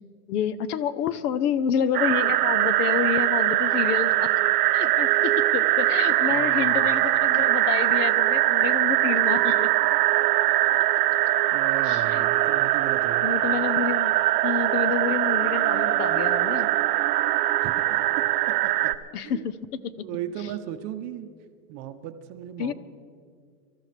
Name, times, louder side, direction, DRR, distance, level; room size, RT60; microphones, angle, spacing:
voice 1, 0.3-4.3 4.7-9.7 11.8-12.3 13.2-16.7 19.1-19.5 19.8-19.9 22.6-22.7, left 8 dB, 85° left, 16 dB, 0.9 m, -28 dB
sound 1, 1.9-18.9, right 15 dB, 85° right, 0.8 m, -22 dB
voice 2, 6.3-6.9 11.5-13.3 17.6-17.7 18.2-18.9 19.2-19.4 20.0-21.3 21.7-22.7, right 11 dB, 35° right, 8 dB, 0.7 m, -36 dB
25.5 x 13.5 x 3.3 m, 2.2 s
supercardioid pair, 150°, 46 cm